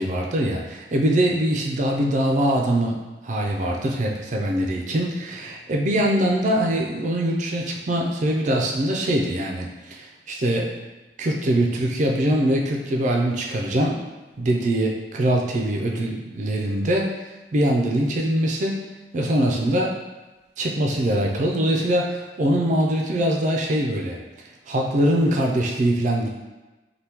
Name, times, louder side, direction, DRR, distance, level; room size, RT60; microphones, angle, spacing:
voice 1, 0.0-10.7 11.2-14.0 14.4-17.2 17.5-18.8 19.1-20.0 20.6-24.2 24.7-26.3, right 1 dB, 45° right, 0 dB, 0.4 m, -23 dB
3.4 x 2.2 x 2.9 m, 1.1 s
head